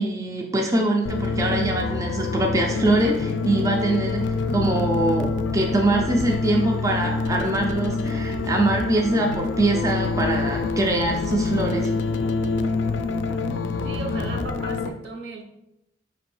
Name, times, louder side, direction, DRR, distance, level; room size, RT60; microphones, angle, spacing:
voice 1, 0.0-11.9, right 2 dB, 15° right, 0 dB, 0.3 m, -23 dB
sound 1, 1.0-14.9, left 3 dB, 70° left, 0.3 m, -26 dB
voice 2, 13.8-15.4, right 2 dB, 65° right, 2 dB, 0.7 m, -35 dB
5.0 x 2.9 x 3.1 m, 0.86 s
head